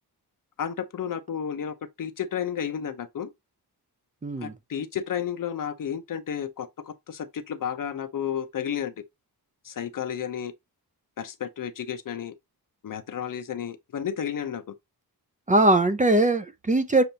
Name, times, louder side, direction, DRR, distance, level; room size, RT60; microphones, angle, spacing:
voice 1, 0.6-3.3 4.4-8.9 9.7-10.5 11.2-12.3 12.8-14.7, left 8 dB, 55° left, 0.7 m, -32 dB
voice 2, 4.2-4.5 15.5-17.0, right 2 dB, 20° right, 0.5 m, -21 dB
6.8 x 2.6 x 2.8 m
wide cardioid pair, 125°, 39 cm